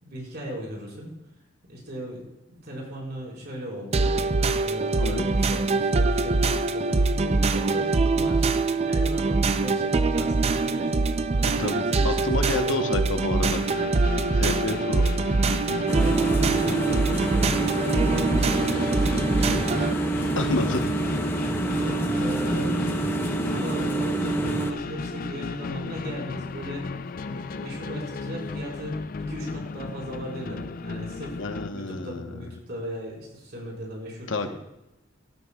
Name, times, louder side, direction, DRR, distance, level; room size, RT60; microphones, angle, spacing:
voice 1, 0.0-1.1 1.7-2.2 2.5-4.1 4.6-11.0 11.4-13.0 15.6-19.7 20.4-20.7 21.6-26.9 27.3-34.5, equal, 55° right, -3 dB, 4.5 m, -37 dB
sound 1, 3.9-19.9, right 3 dB, 35° right, 0.4 m, -24 dB
voice 2, 11.4-13.6 14.3-15.1 20.4-20.8 31.4-32.4 34.3-34.5, left 2 dB, 80° left, 7 dB, 1.0 m, -29 dB
sound 2, 13.5-31.7, left 4 dB, 45° left, 0.4 m, -35 dB
sound 3, 15.9-24.7, right 2 dB, 10° left, 0.8 m, -27 dB
16.0 x 12.5 x 2.3 m, 0.95 s
head